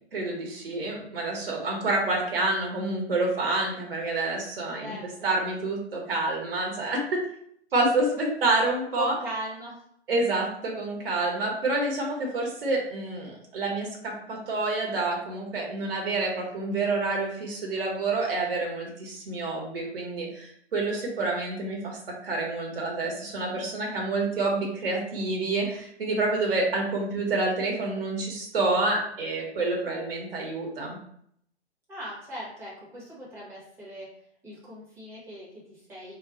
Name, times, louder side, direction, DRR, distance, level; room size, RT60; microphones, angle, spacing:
voice 1, 0.1-5.0 5.2-7.2 7.7-9.1 10.1-31.0, right 2 dB, 55° right, 0 dB, 1.0 m, -28 dB
voice 2, 4.8-5.3 7.7-8.0 8.9-9.7 31.9-34.1 34.4-36.1, equal, 5° right, -7 dB, 0.8 m, -39 dB
2.3 x 2.2 x 3.7 m, 0.69 s
figure-of-eight pair, 125°, 35 cm